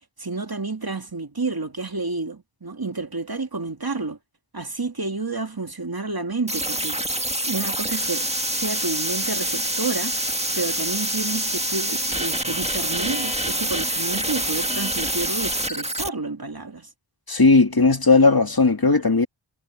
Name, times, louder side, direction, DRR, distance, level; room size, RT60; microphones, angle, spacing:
voice 1, 0.2-4.2 4.5-7.0 7.4-8.3 8.5-10.2 10.5-16.9, right 3 dB, 50° right, 2.5 m, -30 dB
sound 1, 6.5-16.1, right 1 dB, 15° right, 1.7 m, -26 dB
voice 2, 17.3-19.3, left 3 dB, 50° left, 2.4 m, -16 dB
wide cardioid pair, 40°, 48 cm